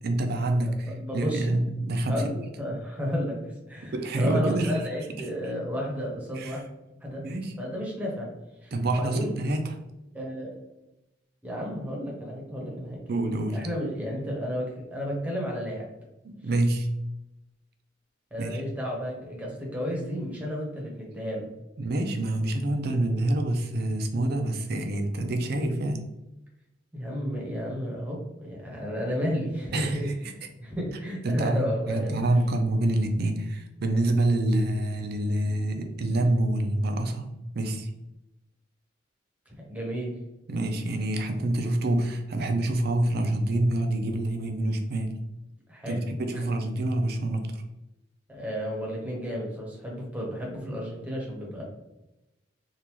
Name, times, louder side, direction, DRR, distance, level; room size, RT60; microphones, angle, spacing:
voice 1, 0.0-2.2 3.9-4.8 6.4-6.6 7.2-7.5 8.7-9.8 13.1-13.6 16.2-16.9 18.4-18.6 21.8-26.0 29.7-30.1 31.2-37.9 40.5-45.2 45.9-47.6, right 1 dB, 55° right, 5 dB, 0.5 m, -27 dB
voice 2, 0.6-1.5 2.1-6.6 7.0-7.2 7.6-8.3 8.6-9.3 10.1-10.5 11.4-13.0 13.5-15.9 18.3-21.5 26.9-32.1 39.7-40.1 45.7-46.1 46.3-46.5 48.3-51.6, equal, 10° right, -3 dB, 1.0 m, -32 dB
3.7 x 2.5 x 3.0 m, 0.95 s
head